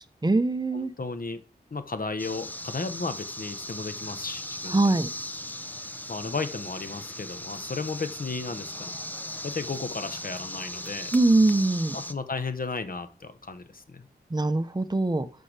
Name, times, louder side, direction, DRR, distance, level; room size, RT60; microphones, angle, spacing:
voice 1, 0.2-0.9 4.7-5.1 11.1-12.0 14.3-15.3, right 2 dB, 25° right, 10 dB, 0.9 m, -22 dB
voice 2, 0.7-1.4 1.7-4.8 6.1-9.0 9.4-11.1 11.9-14.1, left 4 dB, 55° left, 10 dB, 1.0 m, -34 dB
sound 1, 2.2-12.1, left 1 dB, 10° left, 0.7 m, -38 dB
13.5 x 5.7 x 3.4 m, 0.40 s
wide cardioid pair, 60°, 18 cm